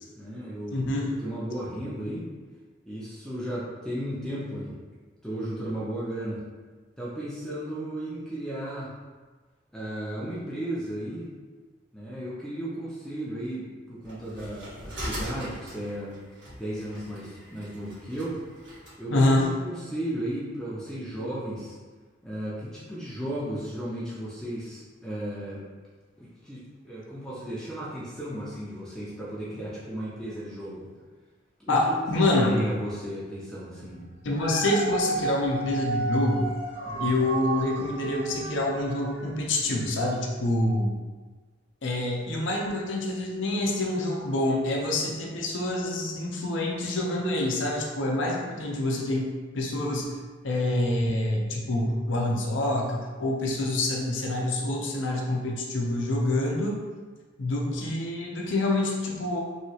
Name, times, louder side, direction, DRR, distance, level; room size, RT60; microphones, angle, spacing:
voice 1, 0.2-2.3 2.9-4.8 5.2-6.4 7.0-8.9 9.7-11.3 11.9-16.2 16.6-18.4 19.0-21.8 22.2-25.7 26.2-30.9 31.7-34.0 36.8-37.1, right 1 dB, 5° left, -9 dB, 0.5 m, -35 dB
voice 2, 0.7-1.1 19.1-19.5 31.7-32.6 34.2-36.5 37.0-40.9 41.8-49.3 49.5-50.1 50.4-56.8 57.4-59.4, left 1 dB, 75° left, -2 dB, 0.6 m, -26 dB
sound 1, 14.0-19.0, equal, 65° right, 1.5 m, -40 dB
Dog, 34.1-39.5 40.0-40.1, right 2 dB, 35° right, 1.0 m, -33 dB
3.1 x 2.8 x 2.8 m, 1.4 s
head